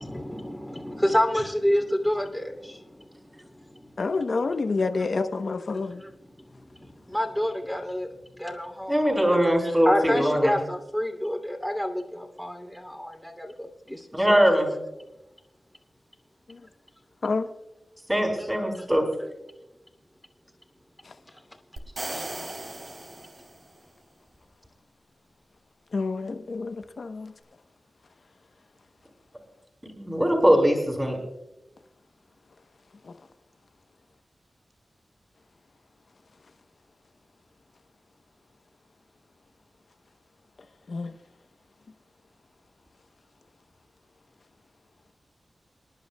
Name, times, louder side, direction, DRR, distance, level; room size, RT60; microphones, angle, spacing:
voice 1, 0.0-4.0 4.4-4.5 5.8-9.4 9.8-14.5, equal, 5° left, 2.7 m, -29 dB
voice 2, 4.0-6.0 16.5-16.6 17.2-17.5 21.0-21.1 25.9-27.3 33.0-33.1 40.9-41.1, left 4 dB, 70° left, 0.8 m, -28 dB
voice 3, 8.9-10.6 14.1-14.7 18.1-19.0 29.8-31.2, equal, 15° right, 4.6 m, -21 dB
sound 1, 21.8-23.8, right 2 dB, 55° right, 3.4 m, -37 dB
28.5 x 11.0 x 2.3 m
cardioid pair, 55°, 0 cm